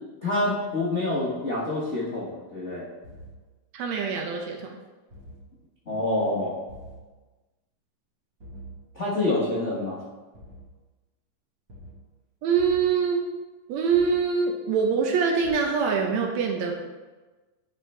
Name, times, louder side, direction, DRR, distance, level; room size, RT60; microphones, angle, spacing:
voice 1, 0.2-2.8 5.9-6.6 8.9-10.0, left 2 dB, 70° left, -7 dB, 0.6 m, -27 dB
sound 1, 3.0-3.3 5.1-5.4 6.7-7.0 8.4-8.8 10.3-10.7 11.7-11.9 12.6-12.9 13.9-14.2 15.4-15.5, right 1 dB, 45° right, 1.7 m, -44 dB
voice 2, 3.7-4.7 12.4-13.2 13.7-16.7, right 6 dB, 75° right, 1 dB, 1.8 m, -24 dB
9.7 x 5.5 x 3.3 m, 1.2 s
omnidirectional pair, 3.6 m